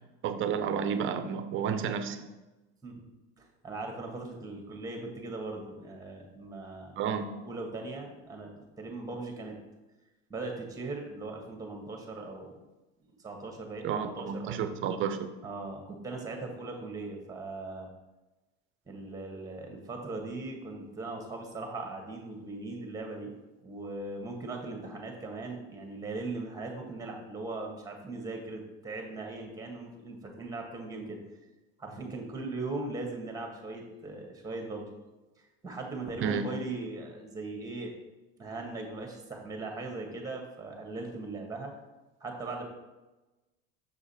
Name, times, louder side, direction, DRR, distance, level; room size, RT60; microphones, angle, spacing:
voice 1, 0.2-2.2 7.0-7.2 13.8-15.2 36.2-36.5, right 7 dB, 40° right, 10 dB, 0.7 m, -31 dB
voice 2, 3.4-7.0 7.4-8.5 8.8-9.6 10.3-12.6 13.2-14.6 15.4-17.9 18.8-23.3 23.6-31.2 31.8-34.9 35.4-38.0 38.4-41.7 42.2-42.6, right 3 dB, 10° right, 2 dB, 1.5 m, -39 dB
7.1 x 4.8 x 4.3 m, 1.1 s
supercardioid pair, 120°, 30 cm